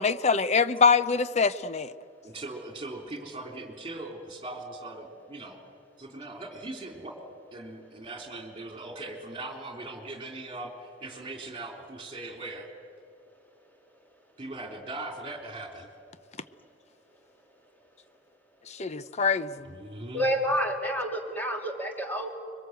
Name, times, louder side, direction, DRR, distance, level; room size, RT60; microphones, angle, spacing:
voice 1, 0.0-1.9 18.8-19.7, left 5 dB, 35° left, 13 dB, 0.6 m, -24 dB
voice 2, 2.2-5.6 6.0-7.1 7.5-12.7 14.4-15.9 19.6-20.3, right 2 dB, 30° right, 3 dB, 3.3 m, -40 dB
voice 3, 20.1-22.3, equal, 10° left, 1 dB, 2.8 m, -29 dB
25.5 x 22.5 x 7.9 m, 2.4 s
head